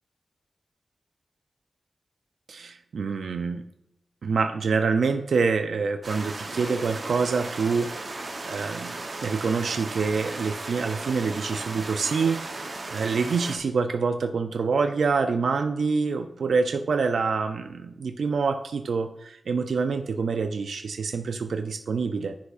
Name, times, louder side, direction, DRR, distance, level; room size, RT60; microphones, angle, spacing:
voice 1, 2.5-3.6 4.2-7.9 8.5-12.4 12.9-22.3, right 5 dB, 85° right, 7 dB, 0.4 m, -26 dB
sound 1, 6.0-13.6, right 2 dB, 45° right, 0.8 m, -36 dB
10.0 x 4.7 x 2.4 m, 0.82 s
wide cardioid pair, 150°, 0 cm